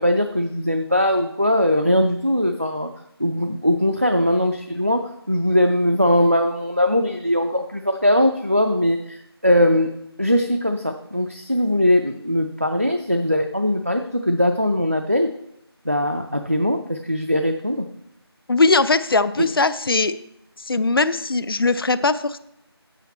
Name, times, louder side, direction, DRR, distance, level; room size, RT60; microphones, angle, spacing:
voice 1, 0.0-2.9 3.2-5.0 5.3-9.9 10.2-15.3 15.9-17.9 19.4-19.5, left 1 dB, 35° right, 5 dB, 0.4 m, -20 dB
voice 2, 18.5-20.1 20.7-22.4, left 3 dB, 60° left, 13 dB, 0.4 m, -20 dB
8.1 x 7.3 x 4.2 m, 0.81 s
figure-of-eight pair, 180°, 14 cm